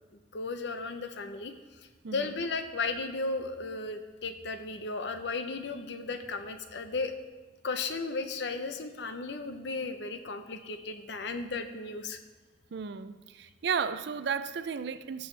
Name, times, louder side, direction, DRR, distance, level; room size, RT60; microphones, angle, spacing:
voice 1, 0.3-7.1 7.6-12.2, left 3 dB, 65° left, 0.7 m, -35 dB
voice 2, 2.0-2.4 12.7-15.3, right 6 dB, 65° right, 0.4 m, -34 dB
16.5 x 7.0 x 3.3 m
head